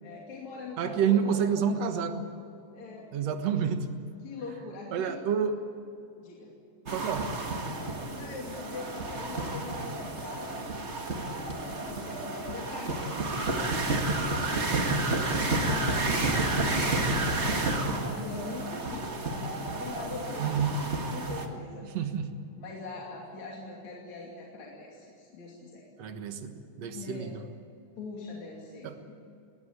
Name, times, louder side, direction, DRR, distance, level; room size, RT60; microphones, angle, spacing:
voice 1, 0.0-2.0 2.7-3.1 4.2-5.2 6.2-6.6 8.2-10.7 11.1-14.9 15.5-20.5 20.9-21.9 22.6-25.9 26.9-27.4 28.0-29.2, left 3 dB, 60° left, -3 dB, 3.9 m, -42 dB
voice 2, 0.8-2.2 3.1-3.9 4.9-5.6 6.9-7.3 15.9-16.5 20.4-20.8 21.8-22.3 26.0-27.4 28.8-29.0, right 7 dB, 60° right, 7 dB, 2.4 m, -29 dB
sound 1, 6.9-21.5, right 2 dB, 30° right, 1.4 m, -31 dB
20.5 x 19.5 x 8.8 m, 2.7 s
omnidirectional pair, 3.7 m